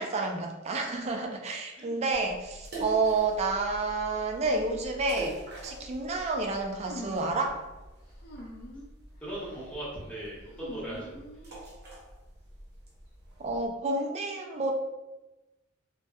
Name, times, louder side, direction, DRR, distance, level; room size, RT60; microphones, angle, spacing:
voice 1, 0.0-5.4 5.6-7.7 13.4-14.7, right 3 dB, 30° right, 2 dB, 0.3 m, -30 dB
sound 1, 2.1-13.7, right 1 dB, 50° right, 0.7 m, -45 dB
sound 2, 6.8-7.4 8.2-8.9 9.3-9.7 10.5-11.7, equal, 45° left, 0.5 m, -45 dB
voice 2, 9.2-11.2 11.5-11.6, right 1 dB, 5° left, -8 dB, 0.8 m, -39 dB
2.6 x 2.2 x 2.2 m, 1.1 s
head